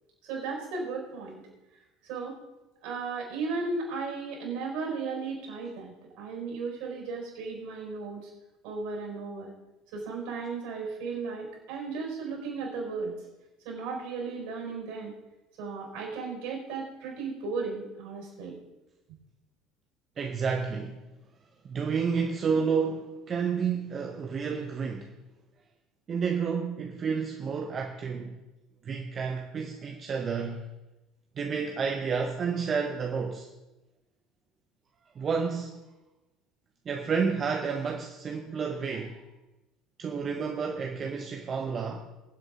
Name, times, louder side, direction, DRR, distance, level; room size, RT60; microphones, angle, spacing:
voice 1, 0.2-1.4 2.0-2.4 2.8-8.3 8.6-9.5 9.9-13.1 13.6-15.1 15.6-18.6, right 4 dB, 65° right, 0 dB, 5.4 m, -35 dB
voice 2, 20.2-21.0 21.6-25.1 26.1-28.4 28.8-30.6 31.4-33.5 35.1-35.8 36.8-39.2 40.0-42.1, right 5 dB, 40° right, 4 dB, 1.1 m, -30 dB
23.0 x 8.0 x 3.8 m, 1.0 s
figure-of-eight pair, 65°, 0 cm